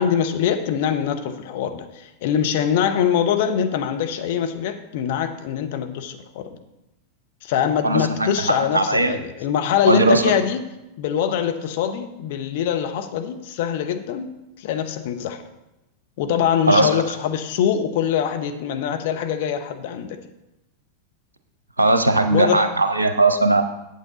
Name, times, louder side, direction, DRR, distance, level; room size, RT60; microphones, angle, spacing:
voice 1, 0.0-6.5 7.4-10.6 11.0-15.4 16.2-20.2 22.3-22.7, left 9 dB, 50° left, 6 dB, 0.7 m, -23 dB
voice 2, 7.8-9.2 9.8-10.3 16.7-17.0 21.8-23.6, right 2 dB, 75° right, 7 dB, 0.7 m, -18 dB
8.3 x 7.7 x 3.9 m, 0.94 s
figure-of-eight pair, 90°, 0 cm